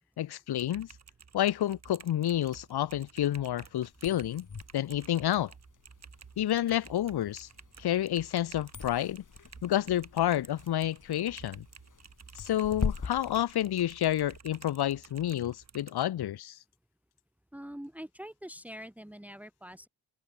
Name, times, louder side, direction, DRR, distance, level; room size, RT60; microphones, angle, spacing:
voice 1, 0.2-0.9 1.3-4.5 4.7-5.5 6.4-7.5 7.8-9.2 9.6-11.6 12.4-16.6, left 12 dB, 75° left, 0.6 m, -29 dB
Typing, 0.5-16.0, right 6 dB, 40° right, 1.3 m, -53 dB
sound 1, 3.9-14.4, left 5 dB, 50° left, 2.8 m, -42 dB
voice 2, 17.5-19.9, equal, 5° right, 2.2 m, -44 dB
wide cardioid pair, 115°, 39 cm